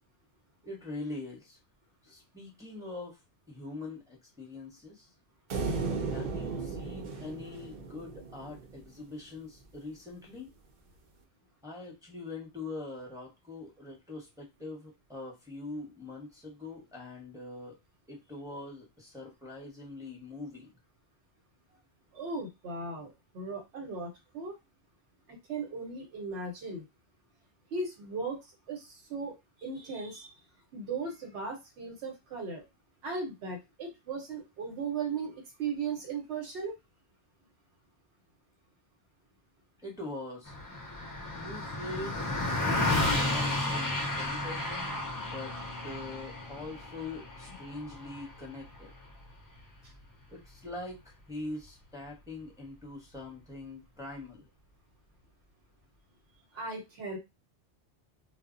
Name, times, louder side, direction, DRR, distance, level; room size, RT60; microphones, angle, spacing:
voice 1, 0.6-1.6 2.0-3.2 3.5-5.1 6.1-10.5 11.6-17.8 18.1-20.8 39.8-40.6 41.3-45.6 45.8-48.9 50.3-54.5, left 2 dB, 5° right, -2 dB, 0.6 m, -43 dB
sound 1, 5.5-8.9, right 4 dB, 55° right, 0.6 m, -35 dB
voice 2, 22.1-24.5 25.3-26.8 27.7-30.4 30.7-32.6 33.0-36.7 49.8-49.9 56.5-57.2, right 4 dB, 85° right, 1 dB, 1.0 m, -37 dB
Car passing by, 40.5-50.1, left 2 dB, 30° left, 0.3 m, -33 dB
2.1 x 2.0 x 3.6 m, 0.23 s
omnidirectional pair, 1.1 m